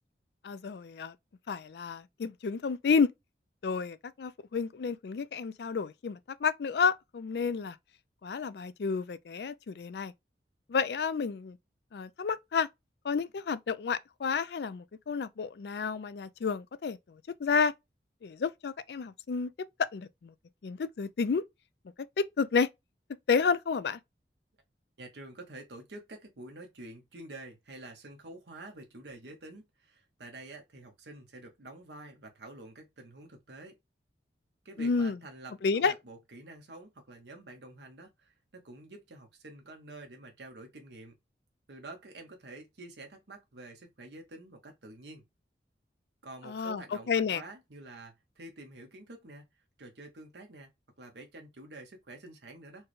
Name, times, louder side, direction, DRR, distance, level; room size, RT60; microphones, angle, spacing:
voice 1, 0.4-1.1 1.5-3.1 3.6-7.8 8.2-10.1 10.7-11.6 11.9-12.7 13.0-17.0 17.4-17.7 18.2-19.5 19.8-20.3 20.6-21.4 22.2-22.7 23.3-24.0 34.8-35.2 35.6-35.9 46.5-46.8 47.1-47.4, left 5 dB, 70° left, 0.4 m, -30 dB
voice 2, 25.0-33.8 34.6-41.1 41.7-45.2 46.2-49.5 49.8-50.7 51.0-52.9, right 2 dB, 80° right, 1.0 m, -48 dB
4.5 x 2.2 x 3.1 m
head